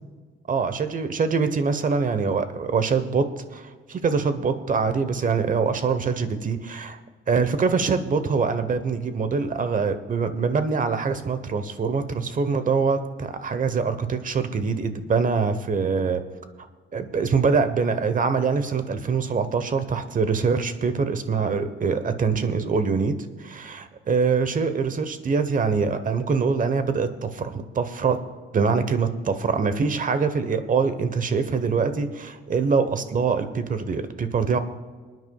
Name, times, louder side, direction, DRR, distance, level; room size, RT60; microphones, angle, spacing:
voice 1, 0.5-3.2 3.5-7.0 7.3-16.2 16.9-23.1 23.4-28.2 28.5-34.6, right 5 dB, 40° right, 10 dB, 1.1 m, -24 dB
28.0 x 9.5 x 2.4 m, 1.5 s
cardioid pair, 90°, 20 cm